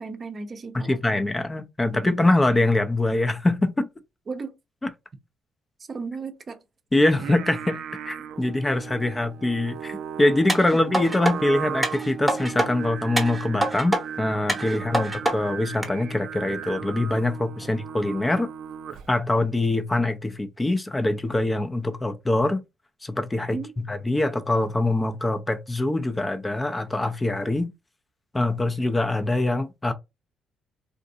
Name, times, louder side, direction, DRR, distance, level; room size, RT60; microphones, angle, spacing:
voice 1, 0.0-1.2 1.9-2.2 4.3-4.5 5.9-6.6 9.1-9.2 10.7-10.8 14.9-15.1 17.6-17.7 23.5-23.7, right 4 dB, 35° right, 0.7 m, -35 dB
voice 2, 0.8-3.9 4.8-4.9 6.9-18.5 19.1-22.6 23.0-23.6 23.9-27.7 28.3-29.9, left 2 dB, 15° left, 0.5 m, -24 dB
Singing, 7.1-19.2, right 8 dB, 75° right, 0.4 m, -36 dB
sound 1, 10.5-11.3 11.8-12.7 13.2-14.0 14.5-15.3 15.8-15.9, right 1 dB, 5° right, 1.0 m, -25 dB
3.8 x 2.5 x 2.6 m
cardioid pair, 125°, 0 cm